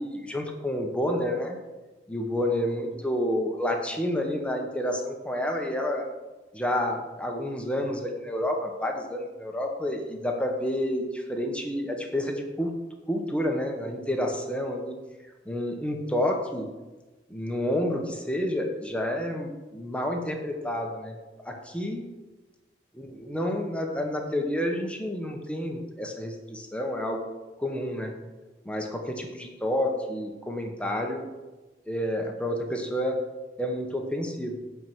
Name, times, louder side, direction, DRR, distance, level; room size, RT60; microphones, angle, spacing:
voice 1, 0.0-1.6 2.1-6.1 6.5-12.7 13.1-15.0 15.4-16.7 17.3-22.0 22.9-27.3 27.6-28.1 28.6-31.3 31.9-33.2 33.6-34.6, left 1 dB, 5° left, 2 dB, 1.2 m, -29 dB
10.0 x 4.8 x 8.0 m, 1.2 s
head